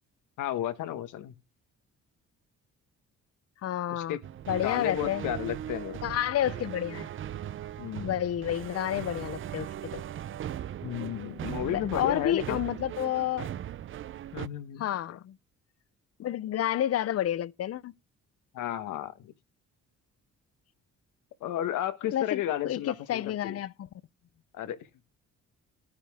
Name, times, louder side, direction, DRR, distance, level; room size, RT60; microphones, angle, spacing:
voice 1, 0.4-1.3 3.9-4.2 4.6-6.0 7.8-8.2 10.8-12.6 14.3-15.2 18.5-19.3 21.4-23.6 24.5-24.8, left 11 dB, 85° left, 1.1 m, -33 dB
voice 2, 3.6-4.2 4.5-5.2 6.0-7.1 8.0-10.0 11.6-13.5 14.8-15.4 16.2-17.9 22.1-23.9, left 11 dB, 55° left, 0.6 m, -30 dB
sound 1, 4.2-14.5, right 11 dB, 45° right, 0.4 m, -39 dB
10.5 x 9.7 x 3.5 m
cardioid pair, 90°, 30 cm